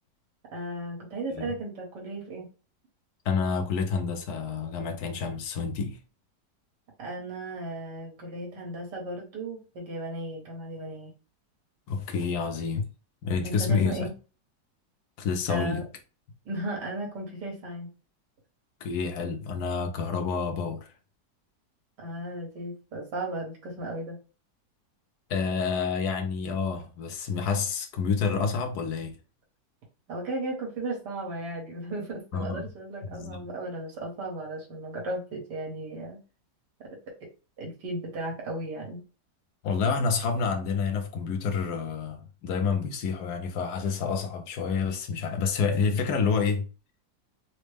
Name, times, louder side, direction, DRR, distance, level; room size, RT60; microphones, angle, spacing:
voice 1, 0.5-2.5 7.0-11.1 13.4-14.1 15.5-15.8 16.5-17.9 22.0-24.2 30.1-36.2 36.8-37.0 37.6-39.0, right 1 dB, 75° right, 1.9 m, -35 dB
voice 2, 3.2-6.0 11.9-12.9 13.2-14.1 15.2-15.8 18.8-20.9 25.3-29.1 32.3-32.7 33.1-33.5 39.6-46.7, left 5 dB, 70° left, 1.2 m, -28 dB
4.1 x 2.1 x 3.3 m
omnidirectional pair, 1.9 m